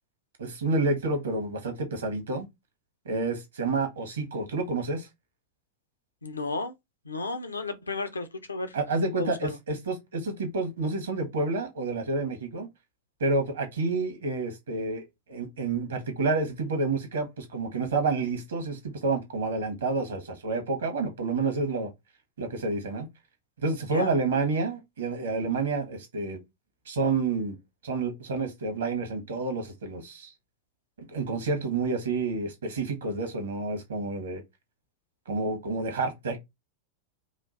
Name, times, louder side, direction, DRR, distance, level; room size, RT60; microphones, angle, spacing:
voice 1, 0.4-2.5 3.0-5.1 8.7-12.7 13.2-15.0 15.3-21.9 22.4-23.1 23.6-26.4 26.8-27.6 27.8-30.3 31.1-34.4 35.3-36.4, right 3 dB, 65° right, 1.5 m, -29 dB
voice 2, 6.2-6.7 7.1-8.7 9.2-9.6 23.9-24.1, left 3 dB, 75° left, 0.8 m, -33 dB
5.0 x 2.5 x 3.9 m
figure-of-eight pair, 90°, 0 cm